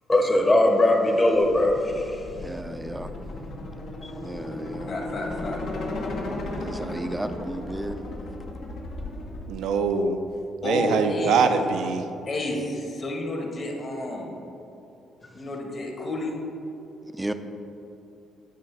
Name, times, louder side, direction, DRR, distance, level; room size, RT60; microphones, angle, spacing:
voice 1, 0.1-2.2 4.0-4.1, left 1 dB, 25° left, 3 dB, 0.9 m, -20 dB
sound 1, 1.3-9.5, left 2 dB, 70° left, 1.0 m, -35 dB
voice 2, 2.4-3.1 4.2-4.9 6.6-8.0 17.1-17.3, right 1 dB, 10° right, 8 dB, 0.4 m, -33 dB
voice 3, 4.9-5.6 10.6-11.5 12.3-14.3 15.3-16.3, left 1 dB, 45° left, 0 dB, 1.5 m, -30 dB
voice 4, 9.5-10.2 10.6-12.0, right 5 dB, 85° right, 7 dB, 0.5 m, -23 dB
9.2 x 3.1 x 5.9 m, 2.8 s
cardioid pair, 90°, 0 cm